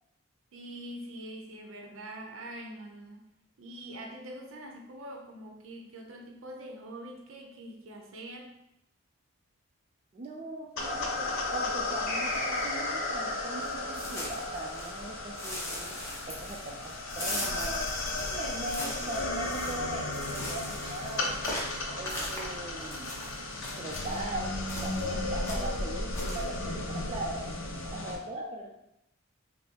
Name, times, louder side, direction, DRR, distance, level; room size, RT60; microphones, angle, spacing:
voice 1, 0.5-3.2 3.6-8.6, right 1 dB, 75° right, 2 dB, 0.6 m, -44 dB
voice 2, 10.1-17.9 18.2-21.7 22.0-23.2 23.8-28.7, right 1 dB, 30° right, -1 dB, 0.3 m, -40 dB
sound 1, 10.8-28.2, left 2 dB, 65° left, 0.6 m, -34 dB
sound 2, 12.1-15.1, left 1 dB, 40° left, 1.5 m, -38 dB
sound 3, 13.6-15.0 15.4-24.2 24.7-25.1 25.4-25.8 26.1-26.4, left 1 dB, 15° left, 0.6 m, -40 dB
5.3 x 2.0 x 2.8 m, 0.85 s
head